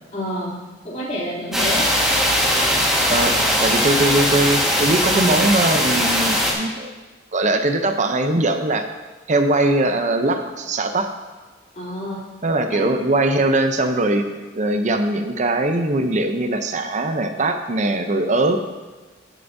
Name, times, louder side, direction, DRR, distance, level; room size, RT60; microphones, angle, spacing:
voice 1, 0.1-0.6 0.8-1.9 3.4-3.5 11.7-12.2 12.7-12.9, equal, 40° left, -6 dB, 3.1 m, -28 dB
sound 1, 1.5-6.5, equal, 5° right, 1.5 m, -19 dB
voice 2, 3.1-6.9 7.3-8.9 9.3-11.1 12.4-14.3 14.5-18.6, right 2 dB, 40° right, 6 dB, 0.6 m, -21 dB
17.0 x 6.9 x 2.7 m, 1.3 s
head